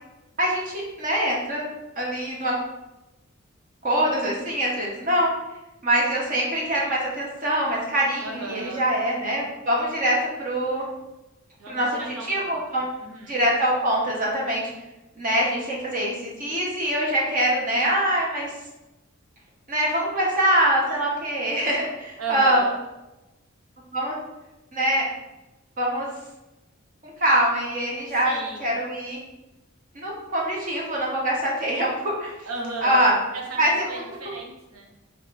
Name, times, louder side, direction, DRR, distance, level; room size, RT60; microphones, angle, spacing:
voice 1, 0.4-1.6 2.0-2.5 3.8-5.3 5.8-10.9 11.7-12.9 13.3-14.7 15.2-18.5 19.7-22.6 23.9-24.1 24.7-25.0 25.8-26.1 27.0-29.2 29.9-32.3 32.8-33.1 33.6-33.8, right 1 dB, 40° right, -3 dB, 0.8 m, -24 dB
voice 2, 8.2-8.8 11.6-13.5 22.2-22.7 28.2-28.6 32.4-34.9, right 3 dB, 80° right, 1 dB, 0.9 m, -36 dB
3.4 x 3.3 x 4.1 m, 1.0 s
head